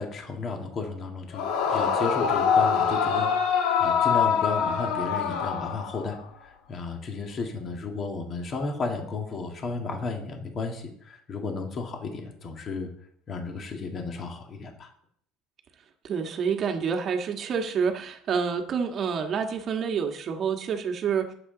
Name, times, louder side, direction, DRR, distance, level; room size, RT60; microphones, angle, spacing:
voice 1, 0.0-12.9 13.3-14.9, left 4 dB, 30° left, 3 dB, 2.0 m, -33 dB
Yell / Screaming, 1.3-6.2, left 7 dB, 65° left, 1.8 m, -24 dB
voice 2, 16.0-21.3, right 6 dB, 30° right, 4 dB, 1.6 m, -28 dB
19.5 x 7.6 x 4.0 m, 0.63 s
cardioid pair, 165°, 0 cm